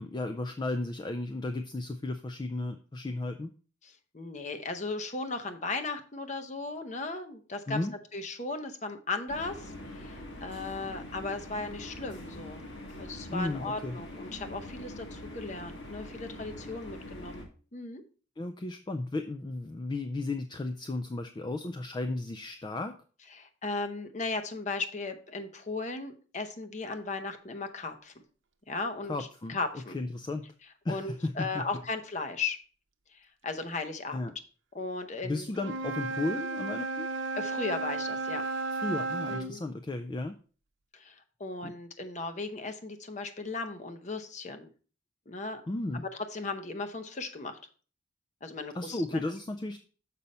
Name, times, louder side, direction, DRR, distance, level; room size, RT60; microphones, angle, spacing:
voice 1, 0.0-3.5 7.7-7.9 13.3-14.0 18.4-23.0 29.1-29.6 29.9-30.5 30.8-31.6 34.1-34.3 35.2-37.1 38.7-40.3 41.6-41.7 45.7-46.1 48.7-49.8, left 2 dB, 20° left, 8 dB, 0.3 m, -34 dB
voice 2, 3.8-7.8 8.1-12.6 13.0-18.0 23.3-28.1 28.7-30.0 30.9-32.6 33.1-34.3 34.7-35.5 37.4-38.4 39.3-39.6 40.9-44.7 45.3-45.6 46.1-47.6 48.4-49.2, left 3 dB, 35° left, 7 dB, 0.7 m, -36 dB
sound 1, 9.3-17.5, left 1 dB, 60° left, 1.7 m, -44 dB
Wind instrument woodwind instrument, 35.5-39.5, right 3 dB, 70° right, 0.8 m, -33 dB
6.8 x 5.3 x 4.2 m, 0.39 s
head